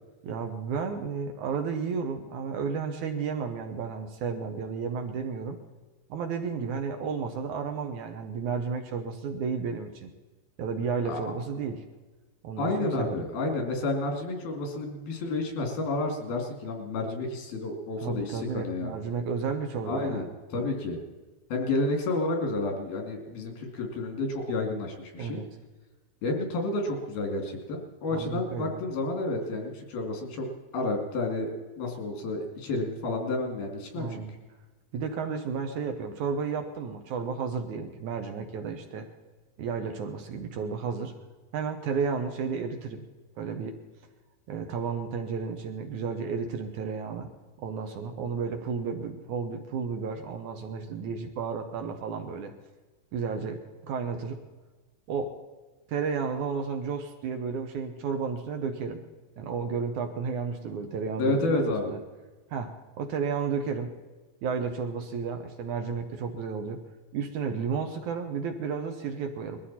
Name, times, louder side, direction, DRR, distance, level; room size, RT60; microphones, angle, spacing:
voice 1, 0.2-5.6 6.1-10.1 10.6-11.8 12.4-13.3 18.0-20.3 20.5-20.7 25.2-25.5 28.1-28.8 33.9-34.4 34.9-39.1 39.6-41.1 41.5-43.0 43.4-43.8 44.5-47.3 47.6-52.5 53.1-54.4 55.1-55.4 55.9-59.0 59.4-62.0 62.5-63.9 64.4-66.8 67.1-69.6, right 5 dB, 65° right, 5 dB, 2.2 m, -32 dB
voice 2, 12.6-18.9 19.8-21.0 21.5-25.4 26.2-30.5 30.7-31.5 31.8-34.2 61.2-61.9, left 2 dB, 90° left, 3 dB, 4.5 m, -30 dB
21.0 x 14.0 x 4.3 m, 1.3 s
omnidirectional pair, 4.2 m